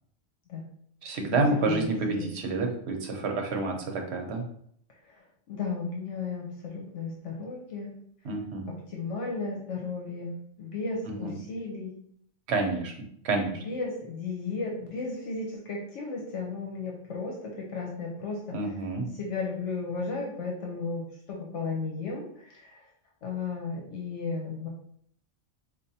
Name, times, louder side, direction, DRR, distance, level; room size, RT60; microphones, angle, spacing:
voice 1, 1.0-4.4 8.2-8.7 11.1-11.3 12.5-12.9 13.2-13.6 18.5-19.0, right 3 dB, 65° right, 2 dB, 1.0 m, -28 dB
voice 2, 1.6-2.3 5.0-8.0 8.7-12.0 13.5-18.8 19.1-22.9 23.2-24.7, left 4 dB, 80° left, -1 dB, 1.1 m, -35 dB
4.7 x 2.5 x 2.7 m, 0.65 s
omnidirectional pair, 1.2 m